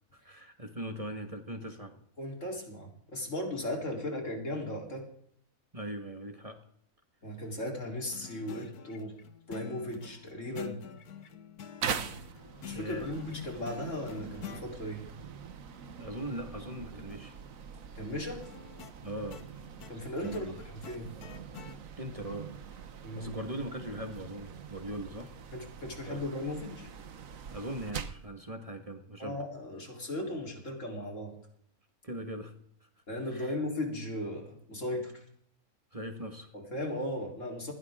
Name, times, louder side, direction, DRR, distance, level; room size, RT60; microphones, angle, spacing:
voice 1, 0.1-1.9 5.7-6.6 12.7-13.1 16.0-17.4 19.0-19.4 20.2-20.6 22.0-22.5 23.2-25.3 25.9-26.2 27.5-29.4 32.0-32.5 33.3-33.5 35.9-36.5, right 1 dB, 25° right, 5 dB, 1.8 m, -40 dB
voice 2, 2.2-5.1 7.2-9.2 9.5-10.8 12.6-15.0 18.0-18.5 19.9-21.1 23.0-23.3 25.5-26.9 29.2-31.4 33.1-35.2 36.5-37.7, left 1 dB, 55° left, 1 dB, 4.3 m, -37 dB
sound 1, 8.1-14.7 18.4-21.8, left 8 dB, 85° left, 1.7 m, -47 dB
sound 2, 11.8-28.3, right 7 dB, 65° right, 1.4 m, -43 dB
20.5 x 16.5 x 3.7 m, 0.65 s
omnidirectional pair, 1.6 m